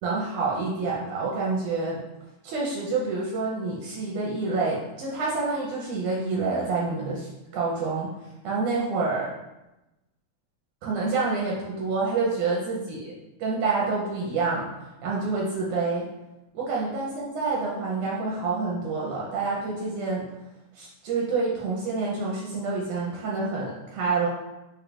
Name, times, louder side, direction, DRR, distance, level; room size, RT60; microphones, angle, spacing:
voice 1, 0.0-2.0 2.4-8.1 8.4-9.3 10.8-13.1 13.4-14.7 15.0-16.1 16.7-20.2 20.8-24.3, right 3 dB, 80° right, -4 dB, 2.0 m, -27 dB
4.9 x 4.3 x 2.4 m, 0.96 s
omnidirectional pair, 3.8 m